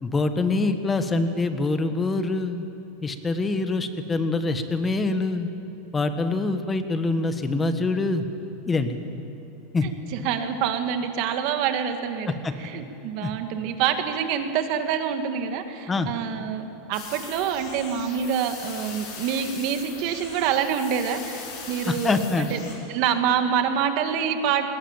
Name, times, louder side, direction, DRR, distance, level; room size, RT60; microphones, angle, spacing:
voice 1, 0.0-2.6 3.0-5.5 5.9-8.3 8.7-9.0 9.7-9.9 12.3-12.5 13.2-13.3 15.9-16.1 21.9-22.5, left 3 dB, 15° left, 8 dB, 1.4 m, -25 dB
voice 2, 9.8-12.3 12.6-22.6 22.9-24.7, right 8 dB, 55° right, 7 dB, 2.1 m, -26 dB
sound 1, 16.9-22.8, left 5 dB, 55° left, 6.4 m, -40 dB
19.5 x 19.5 x 9.0 m, 2.8 s
supercardioid pair, 140°, 0 cm